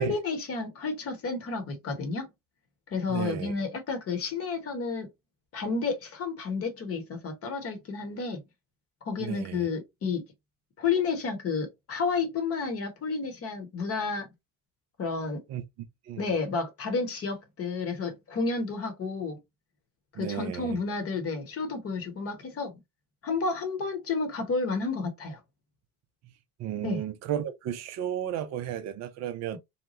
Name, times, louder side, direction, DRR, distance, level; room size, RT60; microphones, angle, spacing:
voice 1, 0.0-2.3 2.9-5.1 5.5-8.4 9.0-10.2 10.8-14.3 15.0-15.4 16.2-19.4 20.2-22.8 23.2-25.4 26.8-27.0, left 4 dB, 30° left, 1.1 m, -31 dB
voice 2, 3.1-3.5 9.2-9.7 15.5-15.6 16.0-16.3 20.1-20.8 26.6-29.6, right 10 dB, 35° right, 0.5 m, -33 dB
2.8 x 2.2 x 2.9 m
hypercardioid pair, 100°, 46 cm